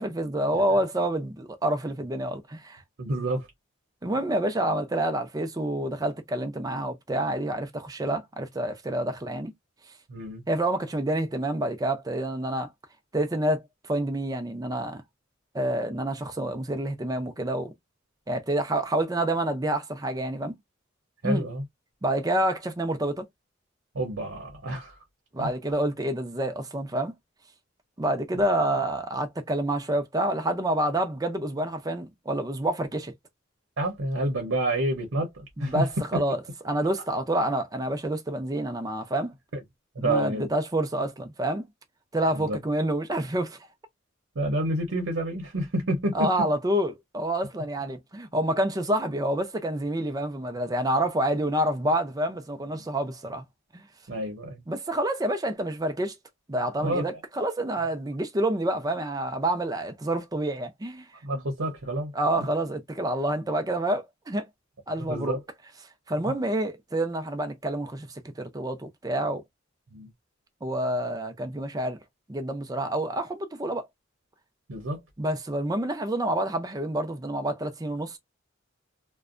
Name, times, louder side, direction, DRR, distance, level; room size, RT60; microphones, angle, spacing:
voice 1, 0.0-2.8 4.0-9.5 10.5-12.7 13.1-13.6 13.9-15.0 15.5-17.7 18.3-20.5 21.2-21.4 22.0-23.3 25.3-27.1 28.0-33.1 35.6-36.4 36.7-39.3 40.0-41.6 42.1-43.6 46.1-53.4 53.7-53.8 54.7-56.2 56.5-61.0 62.1-64.5 64.9-65.4 66.1-69.4 70.6-72.0 72.3-73.9 75.2-78.2, right 1 dB, 20° right, 0.5 m, -28 dB
voice 2, 3.0-3.5 10.1-10.4 21.2-21.6 23.9-24.9 25.4-25.5 28.3-28.4 33.8-35.9 39.5-39.6 39.9-40.5 42.3-42.6 44.4-46.5 51.0-51.1 54.1-54.6 56.8-57.1 61.2-62.1 64.9-65.4 69.9-70.1 74.7-75.0, right 1 dB, 80° right, 0.8 m, -29 dB
2.5 x 2.2 x 2.4 m
head